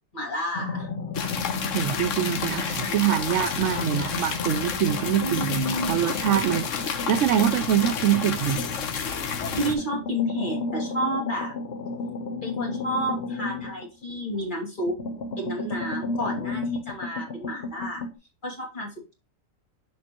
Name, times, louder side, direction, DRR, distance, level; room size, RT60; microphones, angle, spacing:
voice 1, 0.1-0.9 5.2-6.0 9.5-11.5 12.4-15.0 15.4-18.0 18.4-19.1, equal, 35° left, 2.7 m, -30 dB
sound 1, 0.5-3.0 3.3-8.9 9.4-14.4 14.8-18.1, left 3 dB, 55° left, 1.1 m, -34 dB
sound 2, 1.1-9.7, left 6 dB, 70° left, 1.2 m, -30 dB
voice 2, 1.7-8.6, right 10 dB, 70° right, 0.9 m, -24 dB
6.6 x 5.5 x 3.0 m
omnidirectional pair, 1.4 m